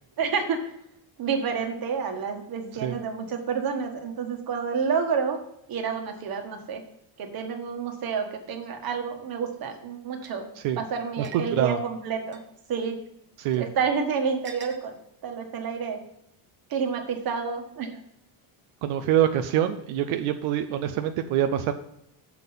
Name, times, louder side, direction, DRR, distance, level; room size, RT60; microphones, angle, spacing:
voice 1, 0.2-0.6 1.2-5.4 5.7-6.8 7.2-10.5 10.8-12.4 12.7-13.0 13.6-15.0 15.2-16.0 16.7-18.0, right 6 dB, 45° right, 4 dB, 1.5 m, -29 dB
Drinking Glasses contact (Clink), 10.2-10.3 11.2-11.5 12.3-12.4 13.5-13.6 14.4-14.8, right 6 dB, 25° right, 1.0 m, -43 dB
voice 2, 11.2-11.8 13.4-13.7 18.8-21.7, right 11 dB, 85° right, 8 dB, 0.7 m, -25 dB
7.3 x 6.0 x 5.5 m, 0.79 s
cardioid pair, 160°, 47 cm